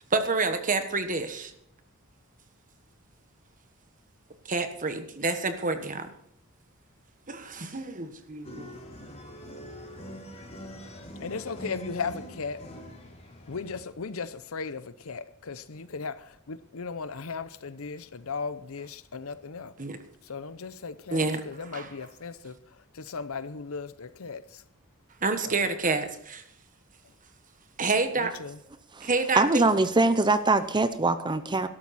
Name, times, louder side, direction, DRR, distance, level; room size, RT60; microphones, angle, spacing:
voice 1, 0.1-1.5 4.5-6.1 7.3-8.8 19.8-20.0 21.1-22.1 25.2-26.4 27.8-28.3 29.0-29.6, right 3 dB, 40° right, 1.3 m, -28 dB
sound 1, 8.4-13.9, equal, 30° left, 3.1 m, -43 dB
voice 2, 11.2-12.6 13.5-16.1 16.5-19.7 20.3-22.5 23.1-24.4 28.4-28.5, left 5 dB, 70° left, 0.7 m, -36 dB
voice 3, 29.3-31.7, right 2 dB, 20° right, 0.7 m, -23 dB
12.5 x 12.0 x 4.2 m
head